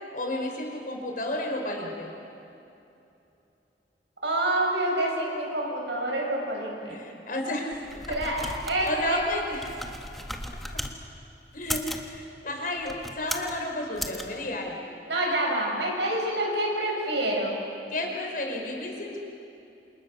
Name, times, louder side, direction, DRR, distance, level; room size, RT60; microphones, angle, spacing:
voice 1, 0.1-2.1 6.8-8.5 8.9-9.8 11.5-14.8 17.9-19.2, left 1 dB, 50° left, 1 dB, 4.9 m, -32 dB
voice 2, 4.2-7.0 8.1-9.2 15.1-17.5, right 1 dB, 75° right, -1 dB, 7.4 m, -27 dB
sound 1, 7.7-10.9 11.5-12.1 12.8-13.6 14.0-14.2, equal, ahead, 1.6 m, -36 dB
29.0 x 27.5 x 6.4 m, 2.8 s
head